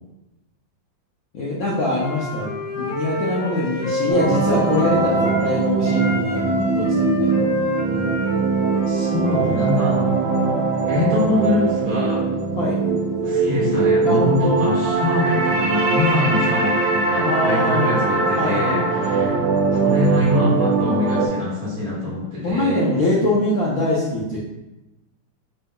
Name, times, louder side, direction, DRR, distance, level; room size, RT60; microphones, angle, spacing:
voice 1, 1.3-2.5 2.8-7.5 7.9-8.2 12.6-12.8 14.0-14.7 17.1-18.0 18.4-19.4 22.4-24.4, left 1 dB, 80° left, -6 dB, 0.7 m, -23 dB
Wind instrument woodwind instrument, 1.9-5.5 5.8-9.8, left 1 dB, 60° left, 1.8 m, -28 dB
sound 1, 4.1-21.3, right 4 dB, 70° right, 1.2 m, -21 dB
voice 2, 8.9-12.3 13.2-19.3 19.7-22.8, left 2 dB, 50° right, -7 dB, 1.5 m, -24 dB
4.1 x 2.2 x 3.5 m, 0.99 s
omnidirectional pair, 2.3 m